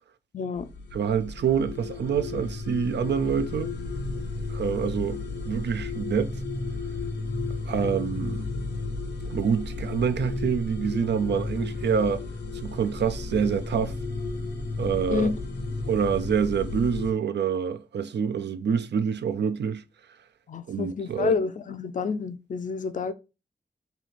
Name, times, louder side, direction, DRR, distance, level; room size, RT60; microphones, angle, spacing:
voice 1, 0.3-0.7 15.1-15.3 20.5-23.1, left 5 dB, 50° left, 0.4 m, -28 dB
sound 1, 0.6-17.1, left 3 dB, 80° left, 0.8 m, -33 dB
voice 2, 0.9-3.7 4.5-6.4 7.7-8.5 9.3-12.2 12.6-13.9 14.8-15.3 15.9-19.8 20.7-21.4, right 7 dB, 80° right, 0.4 m, -26 dB
3.1 x 2.8 x 4.1 m
wide cardioid pair, 80°, 17 cm